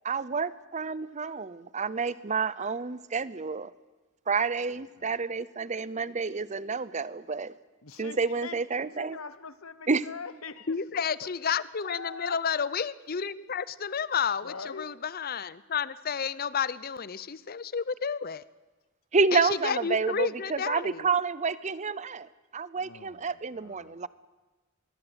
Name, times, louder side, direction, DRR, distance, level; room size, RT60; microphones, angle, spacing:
voice 1, 0.1-3.7 4.3-7.5 8.0-9.2 9.9-10.0 19.1-24.1, right 4 dB, 35° right, 18 dB, 0.7 m, -29 dB
voice 2, 4.8-5.1 7.8-8.6 9.0-10.7 11.2-12.4 14.4-14.9 22.7-24.1, left 4 dB, 85° left, 15 dB, 1.2 m, -43 dB
voice 3, 10.7-18.4 19.3-21.1, left 6 dB, 45° left, 18 dB, 0.7 m, -31 dB
24.5 x 22.0 x 8.1 m, 1.2 s
head